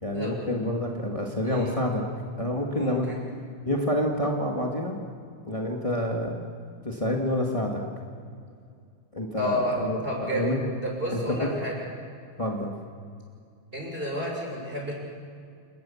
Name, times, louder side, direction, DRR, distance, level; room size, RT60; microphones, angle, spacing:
voice 1, 0.0-2.0 2.4-3.1 3.6-5.0 5.5-6.3 6.8-7.8 9.1-10.0 10.3-10.6 11.1-11.5 12.4-12.7, left 1 dB, 35° left, -1 dB, 0.5 m, -28 dB
voice 2, 1.4-1.8 2.7-3.2 9.4-9.8 10.0-11.9 13.7-14.9, equal, 15° right, -1 dB, 6.5 m, -31 dB
29.0 x 20.0 x 7.2 m, 2.3 s
omnidirectional pair, 4.3 m